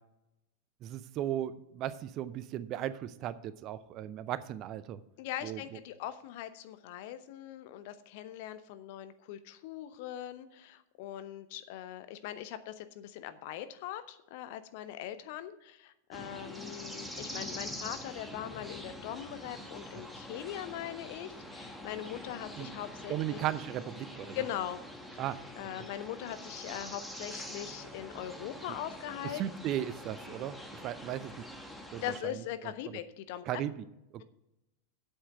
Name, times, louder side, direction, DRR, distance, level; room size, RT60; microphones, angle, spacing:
voice 1, 0.8-5.0 5.4-5.6 22.6-22.7 23.1-24.4 25.2-25.4 29.3-31.4 31.9-32.0 33.5-33.8 34.1-34.2, right 11 dB, 35° right, 16 dB, 0.5 m, -36 dB
voice 2, 5.2-23.4 24.3-24.8 25.6-29.4 32.0-33.6, left 11 dB, 50° left, 11 dB, 0.8 m, -41 dB
sound 1, 16.1-32.2, left 1 dB, ahead, 1.3 m, -45 dB
8.6 x 7.3 x 7.7 m, 0.88 s
figure-of-eight pair, 90°, 0 cm